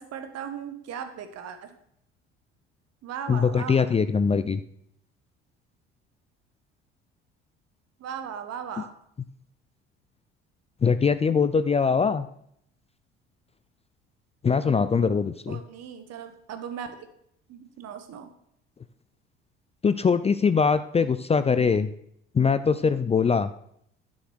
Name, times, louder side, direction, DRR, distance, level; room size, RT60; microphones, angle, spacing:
voice 1, 0.0-1.7 3.0-3.9 8.0-8.9 15.5-16.9 17.5-18.3, right 8 dB, 55° right, 8 dB, 1.5 m, -37 dB
voice 2, 3.3-4.6 10.8-12.3 14.4-15.6 19.8-21.9 22.3-23.5, left 5 dB, 20° left, 13 dB, 0.5 m, -22 dB
9.6 x 6.3 x 6.3 m, 0.71 s
hypercardioid pair, 60°, 30 cm